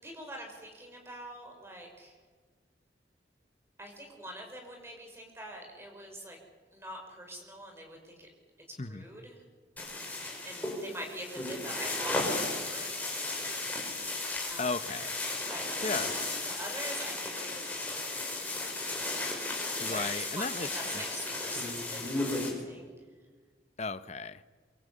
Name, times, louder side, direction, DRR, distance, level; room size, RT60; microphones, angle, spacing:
voice 1, 0.0-2.2 3.8-6.4 6.7-8.3 8.7-9.4 10.3-13.0 14.5-14.7 15.5-16.2 16.4-18.4 19.9-22.9, right 1 dB, 15° right, 2 dB, 5.6 m, -44 dB
sound 1, 9.8-22.5, left 2 dB, 10° left, 5.7 m, -35 dB
voice 2, 14.6-15.1 15.8-16.1 19.8-21.0 23.8-24.4, left 3 dB, 40° left, 12 dB, 0.9 m, -35 dB
24.0 x 23.0 x 8.7 m, 1.5 s
head